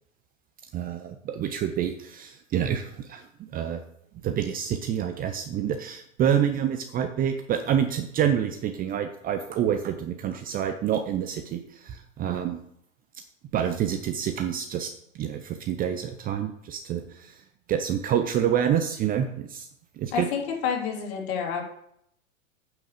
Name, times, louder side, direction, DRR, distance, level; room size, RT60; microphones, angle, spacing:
voice 1, 0.7-3.8 4.2-12.6 13.5-17.3 17.7-19.7 20.0-20.3, right 9 dB, 20° right, 7 dB, 0.7 m, -27 dB
voice 2, 20.1-21.6, left 7 dB, 45° left, 0 dB, 3.3 m, -29 dB
9.2 x 6.0 x 6.7 m, 0.72 s
figure-of-eight pair, 100°, 42 cm